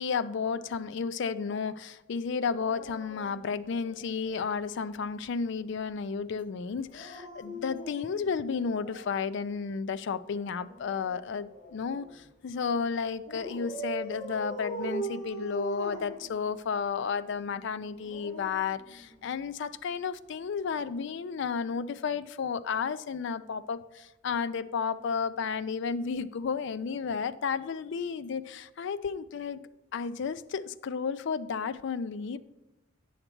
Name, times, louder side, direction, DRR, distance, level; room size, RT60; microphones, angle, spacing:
voice 1, 0.0-29.6 29.9-32.4, left 5 dB, 65° left, 14 dB, 0.4 m, -32 dB
Dog, 2.5-4.3 6.8-9.2 10.4-12.1 13.3-16.8 17.8-19.4 20.7-20.9, right 3 dB, 40° left, 2.3 m, -41 dB
8.8 x 6.5 x 4.5 m, 0.98 s
head